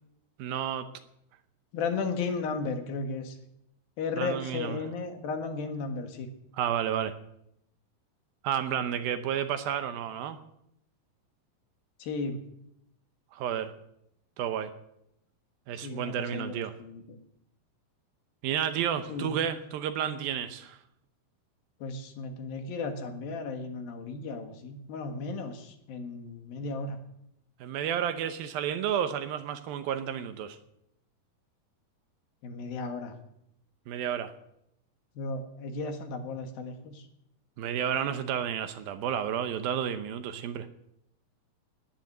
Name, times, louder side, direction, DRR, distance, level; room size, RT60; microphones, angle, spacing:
voice 1, 0.4-0.9 4.2-4.8 6.5-7.1 8.4-10.4 13.3-13.7 14.4-14.7 15.7-16.7 18.4-20.8 27.6-30.6 33.9-34.3 37.6-40.7, right 9 dB, 75° right, 10 dB, 2.6 m, -31 dB
voice 2, 1.7-3.4 4.0-6.3 12.0-12.4 15.8-17.2 19.1-19.4 21.8-27.0 32.4-33.1 35.2-37.1, left 4 dB, 70° left, 6 dB, 3.3 m, -35 dB
17.5 x 10.5 x 7.9 m, 0.78 s
omnidirectional pair, 4.6 m